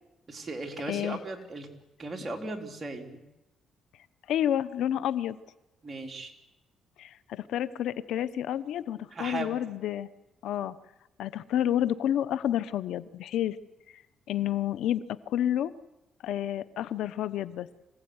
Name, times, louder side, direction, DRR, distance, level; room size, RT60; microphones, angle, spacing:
voice 1, 0.3-1.7 2.0-3.2 5.8-6.3 9.1-9.6, right 2 dB, 30° right, 2 dB, 3.8 m, -37 dB
voice 2, 0.9-1.2 4.3-5.4 7.0-10.1 10.4-10.7 11.2-13.6 14.3-15.7 16.2-17.7, left 11 dB, 80° left, 16 dB, 0.9 m, -29 dB
26.0 x 16.5 x 9.7 m, 0.98 s
cardioid pair, 90°, 0 cm